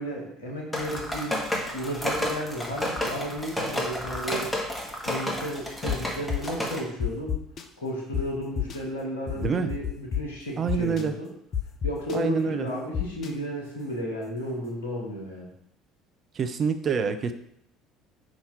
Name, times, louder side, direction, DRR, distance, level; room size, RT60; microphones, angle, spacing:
voice 1, 0.0-1.4 1.7-4.6 5.1-7.4 7.8-11.3 11.8-15.5, equal, 75° left, -1 dB, 1.7 m, -33 dB
sound 1, 0.7-6.8, left 1 dB, 10° left, 1.7 m, -31 dB
sound 2, 5.9-6.0 6.3-6.5 7.0-7.6 8.1-8.2 8.6-8.8 9.3-10.2 10.7-11.0 11.5-12.2 12.9-13.3, left 9 dB, 45° left, 0.7 m, -28 dB
voice 2, 9.4-9.7 10.6-11.1 12.1-12.7 16.4-17.3, right 6 dB, 40° right, 9 dB, 0.6 m, -26 dB
5.7 x 5.2 x 4.5 m, 0.72 s
figure-of-eight pair, 60°, 0 cm